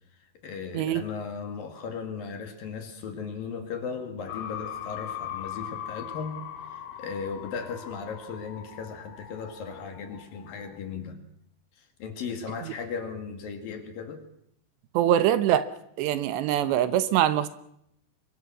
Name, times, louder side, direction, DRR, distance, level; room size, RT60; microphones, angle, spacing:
voice 1, 0.4-6.5 6.7-11.2 12.0-14.2, left 5 dB, 60° left, 3.6 m, -36 dB
sound 1, 4.3-10.8, left 10 dB, 90° left, 4.0 m, -40 dB
voice 2, 14.9-15.7 16.0-17.5, right 11 dB, 80° right, 3.2 m, -23 dB
25.5 x 22.5 x 6.2 m
omnidirectional pair, 5.1 m